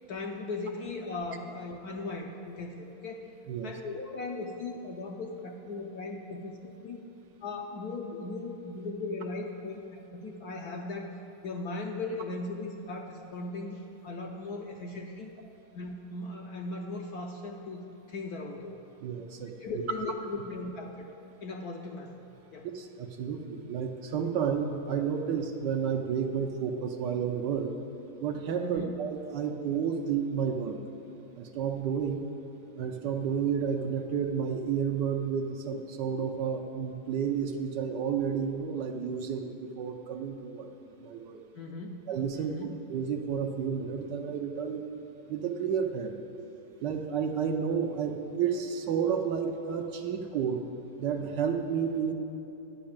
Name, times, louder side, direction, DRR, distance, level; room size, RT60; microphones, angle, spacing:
voice 1, 0.1-3.2 3.6-7.0 7.4-11.1 11.4-15.3 15.7-18.8 19.6-21.1 21.4-22.2 22.5-22.7 28.6-29.0 41.6-42.1 42.3-42.7, left 2 dB, 65° left, 1 dB, 1.0 m, -38 dB
voice 2, 19.0-19.5 22.7-27.7 28.2-30.8 31.4-32.2 32.8-40.7 41.0-41.4 42.1-42.5 42.9-44.8 45.3-46.1 46.8-50.6 51.0-52.1, right 7 dB, 70° right, 4 dB, 1.2 m, -31 dB
11.5 x 5.7 x 8.6 m, 2.8 s
omnidirectional pair, 2.2 m